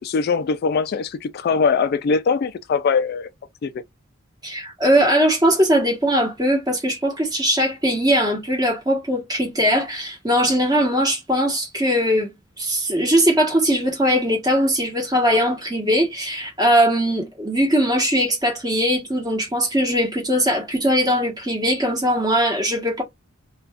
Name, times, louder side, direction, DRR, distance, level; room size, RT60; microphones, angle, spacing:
voice 1, 0.0-3.3 3.6-3.7, left 5 dB, 50° left, 0.3 m, -21 dB
voice 2, 4.4-23.0, equal, 20° right, 1.0 m, -20 dB
2.5 x 2.3 x 3.3 m
head